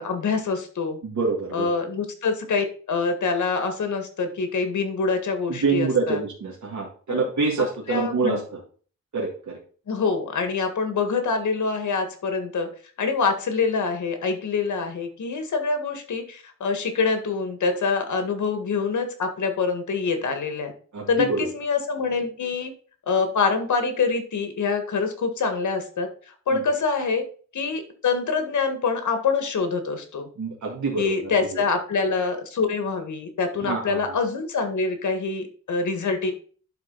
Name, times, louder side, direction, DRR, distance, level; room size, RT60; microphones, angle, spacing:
voice 1, 0.0-1.0 1.5-6.2 7.1-7.3 7.9-8.4 9.9-12.7 13.0-20.7 21.1-22.7 23.1-26.1 26.5-27.2 27.5-30.3 31.0-36.3, left 4 dB, 80° left, 6 dB, 1.7 m, -25 dB
voice 2, 1.0-1.7 5.5-8.6 9.1-9.6 20.9-21.5 26.5-26.6 30.4-31.7 33.6-34.2, right 4 dB, 75° right, -3 dB, 2.1 m, -26 dB
11.5 x 4.0 x 4.0 m, 0.43 s
wide cardioid pair, 115°, 29 cm